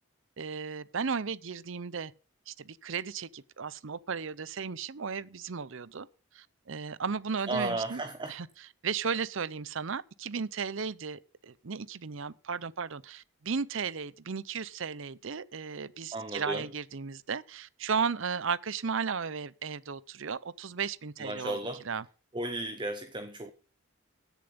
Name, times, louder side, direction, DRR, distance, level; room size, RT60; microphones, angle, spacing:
voice 1, 0.4-2.1 2.5-6.1 6.3-8.0 8.3-21.6 21.8-22.0, right 5 dB, 60° right, 0.6 m, -35 dB
voice 2, 7.5-8.3 16.1-16.6 21.2-21.8 22.3-23.5, right 2 dB, 20° right, 0.8 m, -34 dB
16.0 x 7.0 x 5.3 m
head